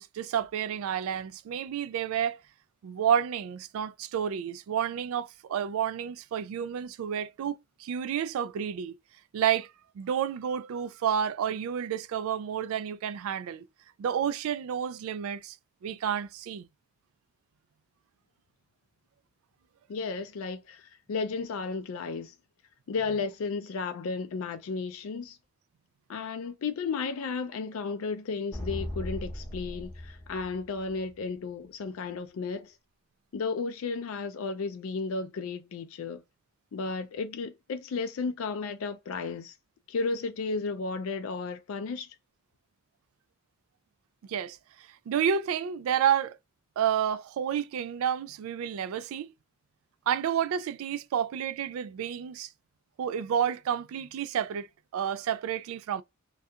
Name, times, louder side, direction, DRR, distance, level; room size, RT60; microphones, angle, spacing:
voice 1, 0.0-2.4 2.8-8.9 9.3-9.7 10.0-13.7 14.0-15.6 15.8-16.7 44.3-44.6 45.1-46.4 46.8-49.3 50.1-52.5 53.0-54.7 54.9-56.0, right 8 dB, 80° right, 0.3 m, -30 dB
voice 2, 19.9-22.3 22.9-25.4 26.1-32.7 33.3-36.2 36.7-39.5 39.9-42.1, left 4 dB, 75° left, 0.4 m, -33 dB
sound 1, 28.5-31.2, left 1 dB, 10° left, 0.8 m, -38 dB
2.4 x 2.2 x 2.7 m
head